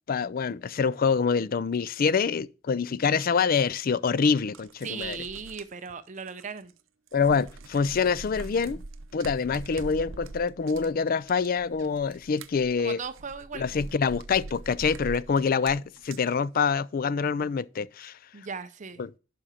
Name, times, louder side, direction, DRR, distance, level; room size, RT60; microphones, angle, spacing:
voice 1, 0.1-5.2 7.1-8.8 9.1-13.0 13.5-18.2 19.0-19.1, left 5 dB, 50° left, 0.4 m, -26 dB
sound 1, 3.4-3.5 4.4-6.8 7.1-16.3, right 3 dB, 85° right, 0.6 m, -43 dB
voice 2, 4.8-6.7 12.8-13.9 18.3-19.0, right 5 dB, 40° right, 0.6 m, -37 dB
11.5 x 5.0 x 4.3 m
head